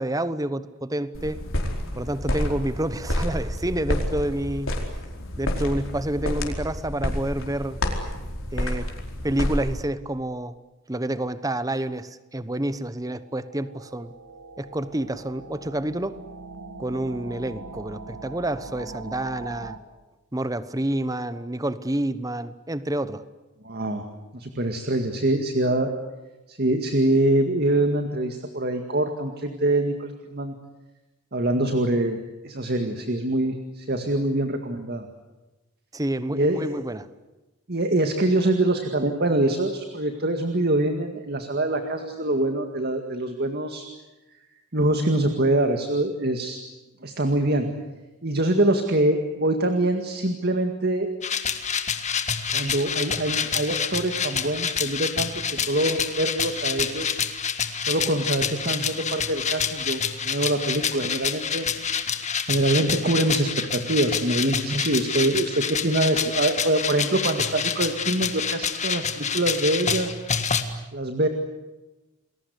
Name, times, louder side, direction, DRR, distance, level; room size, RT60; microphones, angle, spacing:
voice 1, 0.0-1.4 1.9-4.8 5.4-7.8 8.5-8.9 9.2-10.5 10.9-14.1 14.6-16.2 16.8-19.8 20.3-23.2 35.9-37.1, right 1 dB, 15° right, 14 dB, 1.0 m, -28 dB
sound 1, 1.1-9.8, left 1 dB, 60° left, 4.6 m, -29 dB
sound 2, 13.1-19.8, right 3 dB, 75° right, 2.3 m, -41 dB
voice 2, 23.6-24.1 24.3-25.9 26.5-30.5 31.3-32.2 32.4-35.1 36.3-36.8 37.7-43.9 44.7-46.6 47.0-47.8 48.2-51.1 52.5-57.2 57.8-61.7 62.5-70.1 70.9-71.3, right 1 dB, 45° right, 6 dB, 2.0 m, -24 dB
sound 3, 51.2-70.6, left 7 dB, 30° left, 1.7 m, -28 dB
29.5 x 21.5 x 8.3 m, 1.1 s
head